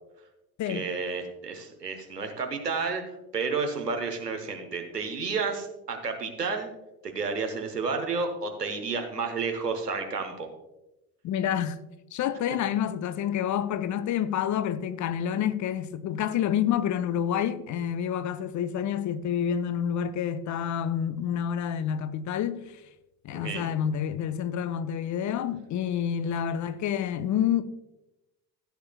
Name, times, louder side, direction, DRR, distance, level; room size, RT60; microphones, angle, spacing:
voice 1, 0.7-3.0 3.3-6.7 7.0-10.5 23.3-23.7, right 4 dB, 90° right, 0.9 m, -31 dB
voice 2, 11.2-11.8 12.1-22.8 23.2-27.6, left 9 dB, 40° left, 0.6 m, -28 dB
15.5 x 8.1 x 2.2 m
figure-of-eight pair, 50°, 47 cm